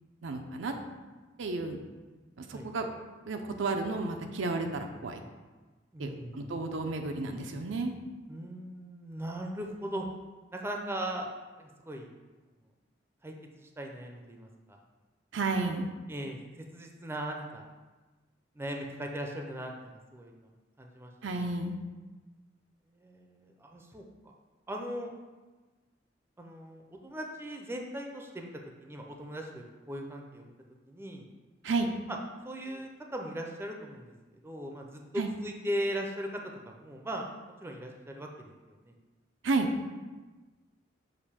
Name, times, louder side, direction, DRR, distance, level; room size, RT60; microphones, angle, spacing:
voice 1, 0.2-0.7 1.4-1.8 2.4-2.9 3.3-5.2 6.0-7.9 15.3-15.9 21.2-21.8 31.6-31.9 35.2-35.3 39.4-39.7, right 3 dB, 90° right, 4 dB, 0.5 m, -32 dB
voice 2, 5.9-6.5 8.3-10.1 10.5-11.3 11.6-12.1 13.2-14.8 16.1-17.6 18.6-20.4 20.8-21.5 22.9-24.0 24.7-25.1 26.4-28.5 28.8-30.4 30.9-31.2 32.4-34.1 34.4-37.3 37.6-38.5 38.8-38.9, equal, 15° right, 2 dB, 0.5 m, -39 dB
6.6 x 2.6 x 5.6 m, 1.2 s
head